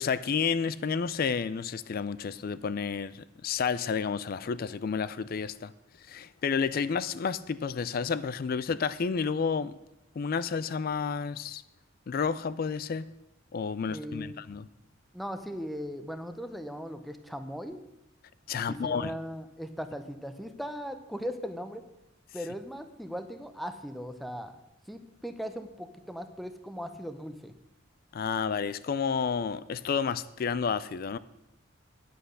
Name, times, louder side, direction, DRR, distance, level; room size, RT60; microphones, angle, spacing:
voice 1, 0.0-5.7 6.1-9.8 10.2-11.6 12.1-13.1 13.5-14.7 18.5-19.1 28.1-31.2, left 6 dB, 45° left, 16 dB, 0.3 m, -30 dB
voice 2, 13.9-14.4 15.1-17.8 18.5-21.8 22.3-24.5 24.9-27.5, equal, ahead, 8 dB, 0.7 m, -38 dB
10.5 x 7.7 x 6.5 m, 0.89 s
head